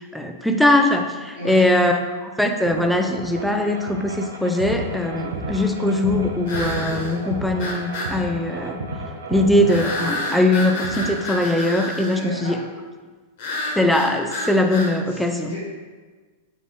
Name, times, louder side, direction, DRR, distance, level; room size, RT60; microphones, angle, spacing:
voice 1, 0.0-8.8 9.3-12.6 13.8-15.6, left 1 dB, ahead, 4 dB, 0.4 m, -21 dB
voice 2, 1.3-1.6 12.1-12.6 15.1-15.6, right 1 dB, 80° left, -11 dB, 1.4 m, -34 dB
sound 1, 2.7-11.6, right 1 dB, 80° right, 0.6 m, -32 dB
sound 2, 2.8-2.9 6.5-7.1 7.6-8.1 9.7-12.2 13.4-14.9, left 2 dB, 60° left, 1.3 m, -29 dB
3.7 x 3.0 x 3.6 m, 1.4 s
hypercardioid pair, 105°, 0 cm